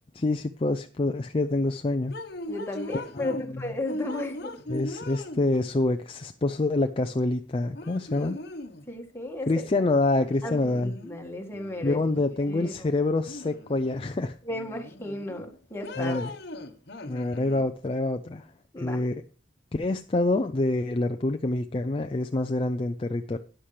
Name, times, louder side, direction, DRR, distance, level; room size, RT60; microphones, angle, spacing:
voice 1, 0.2-2.1 3.2-3.7 4.7-8.4 9.5-10.9 11.8-14.4 16.0-16.3 17.1-18.5 18.8-19.2 19.7-23.4, left 2 dB, 30° left, 6 dB, 0.4 m, -26 dB
sound 1, 2.1-3.5 3.9-5.8 7.2-7.3 7.7-8.9 10.2-11.2 11.5-12.8 13.3-14.1 14.5-15.4 15.8-17.6, left 1 dB, 55° left, 1.1 m, -40 dB
voice 2, 2.5-4.6 8.9-9.5 9.8-9.9 10.4-12.0 12.5-12.9 14.4-16.2 18.7-19.0, left 1 dB, 15° left, 2 dB, 1.8 m, -34 dB
13.0 x 10.0 x 3.3 m, 0.36 s
head